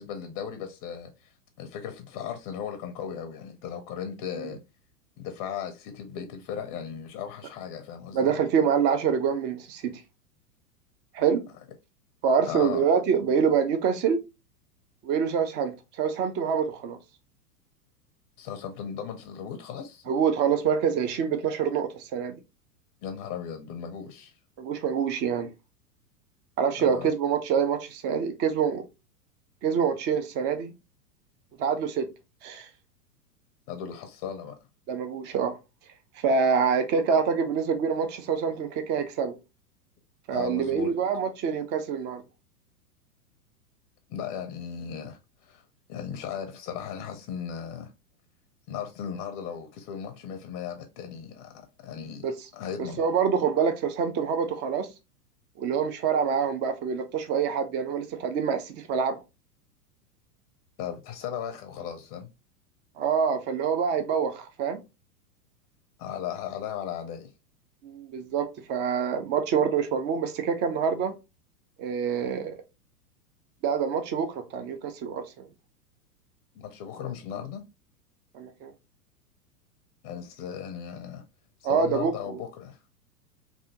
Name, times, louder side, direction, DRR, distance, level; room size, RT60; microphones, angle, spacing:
voice 1, 0.0-1.3 1.6-4.6 5.2-8.3 12.5-12.8 18.4-20.0 23.0-24.3 26.8-27.1 33.7-34.6 40.3-40.9 44.1-47.9 48.7-51.5 51.8-53.0 60.8-62.3 66.0-67.3 76.5-77.6 80.0-81.2 81.6-82.8, left 8 dB, 30° left, 0.6 m, -36 dB
voice 2, 8.1-9.9 11.1-11.4 12.2-14.2 15.0-15.7 16.0-17.0 20.1-22.4 24.6-25.5 26.6-28.8 29.6-30.7 31.6-32.1 32.4-32.7 34.9-35.6 36.2-39.4 40.3-42.2 52.2-52.3 53.0-54.9 55.6-59.2 63.0-64.8 67.8-71.1 71.8-72.6 73.6-75.4 78.3-78.7 81.6-82.1, right 6 dB, 25° right, 0.5 m, -26 dB
3.4 x 2.6 x 2.8 m
hypercardioid pair, 105°, 47 cm